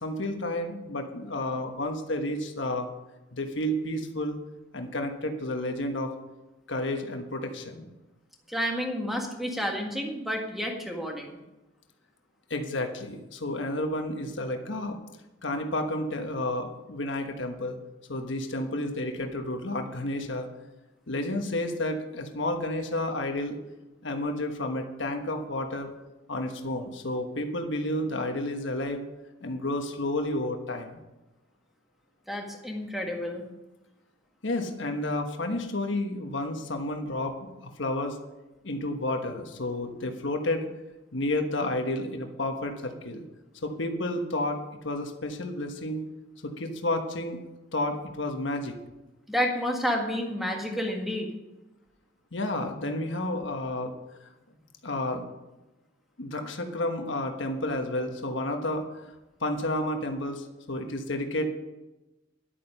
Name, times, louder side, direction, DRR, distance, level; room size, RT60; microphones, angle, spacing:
voice 1, 0.0-2.9 3.3-4.4 4.7-6.1 6.7-7.9 12.5-15.0 15.4-17.8 18.1-20.5 21.1-23.6 24.0-25.9 26.3-29.0 29.4-31.0 34.4-37.3 37.6-38.2 38.6-40.7 41.1-43.2 43.6-46.0 46.4-47.4 47.7-48.7 52.3-53.9 54.8-55.2 56.2-58.8 59.4-61.5, left 1 dB, 70° left, 4 dB, 1.3 m, -31 dB
voice 2, 8.5-11.4 32.3-33.4 49.3-51.3, equal, ahead, 1 dB, 1.7 m, -30 dB
11.0 x 9.0 x 5.4 m, 1.0 s
head